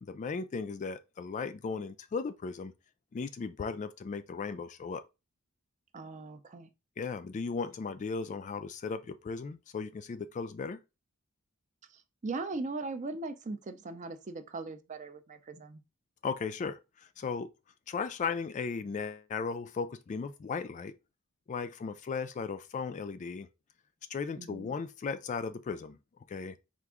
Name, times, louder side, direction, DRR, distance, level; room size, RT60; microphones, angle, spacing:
voice 1, 0.1-2.7 3.1-5.0 7.0-10.8 16.2-17.5 17.9-20.9 21.5-23.5 24.1-26.0 26.3-26.6, left 5 dB, 35° left, 0.3 m, -36 dB
voice 2, 5.9-6.7 11.9-15.8 24.4-24.7, right 3 dB, 35° right, 0.4 m, -39 dB
4.6 x 2.5 x 3.5 m
head